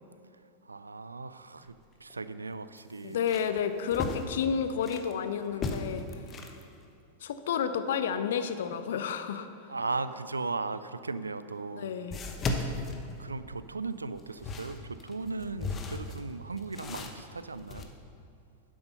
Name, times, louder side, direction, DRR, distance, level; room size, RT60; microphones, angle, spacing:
voice 1, 0.6-3.4 9.7-11.9 12.5-17.9, right 3 dB, 80° right, 13 dB, 0.4 m, -37 dB
sound 1, 1.6-1.7 2.1-2.2 2.8-5.1 5.5-6.6 10.9-11.0 12.1-13.7 14.1-17.8, left 3 dB, 25° left, 1.0 m, -36 dB
voice 2, 3.0-6.1 7.2-9.5 11.8-12.1, left 7 dB, 60° left, 10 dB, 0.6 m, -31 dB
11.0 x 7.7 x 5.6 m, 2.6 s
figure-of-eight pair, 90°, 0 cm